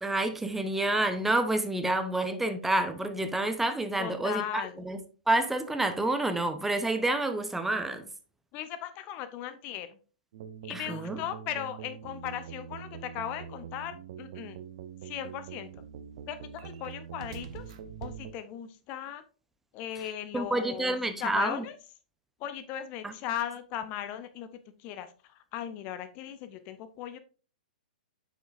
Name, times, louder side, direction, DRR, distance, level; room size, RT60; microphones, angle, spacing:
voice 1, 0.0-5.0 5.3-8.1 10.7-11.2 20.3-21.6 23.0-23.1, right 2 dB, 5° right, 0.6 m, -28 dB
voice 2, 4.0-4.9 8.5-10.0 10.6-14.6 15.0-15.7 16.3-17.7 18.0-19.2 19.7-21.7 22.4-24.5 24.8-27.2, left 10 dB, 30° left, 0.6 m, -38 dB
sound 1, 10.3-18.3, right 8 dB, 50° right, 0.8 m, -44 dB
7.9 x 6.0 x 2.5 m
figure-of-eight pair, 110°, 5 cm